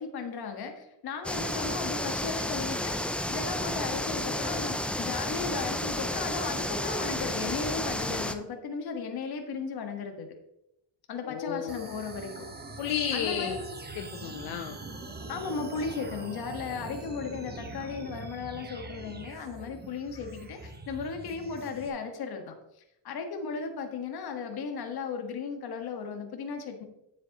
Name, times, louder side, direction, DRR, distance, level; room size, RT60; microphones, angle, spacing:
voice 1, 0.0-10.3 11.1-12.5 13.1-13.6 15.3-22.5 23.0-26.8, left 5 dB, 55° left, 5 dB, 1.5 m, -36 dB
sound 1, 1.2-8.3, left 1 dB, 5° left, 0.3 m, -32 dB
voice 2, 11.2-11.9 12.8-13.6 14.0-14.8, left 9 dB, 85° left, 6 dB, 0.8 m, -32 dB
sound 2, 11.7-21.9, right 3 dB, 20° right, 1.1 m, -43 dB
9.8 x 7.4 x 3.0 m, 0.86 s
cardioid pair, 110°, 45 cm